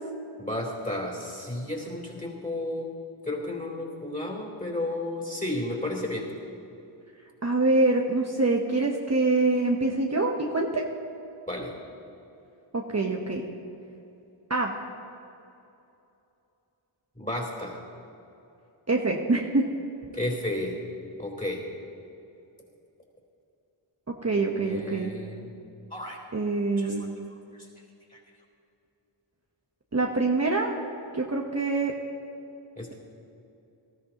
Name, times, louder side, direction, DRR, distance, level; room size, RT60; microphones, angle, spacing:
voice 1, 0.4-2.9 3.2-6.3 11.5-11.7 17.2-17.8 20.1-20.8 21.2-21.6 24.3-25.5 25.9-26.2 26.8-26.9 28.1-28.2 32.8-32.9, left 1 dB, 15° left, 0 dB, 3.5 m, -33 dB
voice 2, 7.4-10.8 12.7-13.4 14.5-14.7 18.9-19.6 24.2-25.1 26.3-27.0 29.9-30.7 31.1-31.9, right 3 dB, 30° right, 0 dB, 1.0 m, -25 dB
19.0 x 13.5 x 2.9 m, 2.8 s
wide cardioid pair, 55°, 50 cm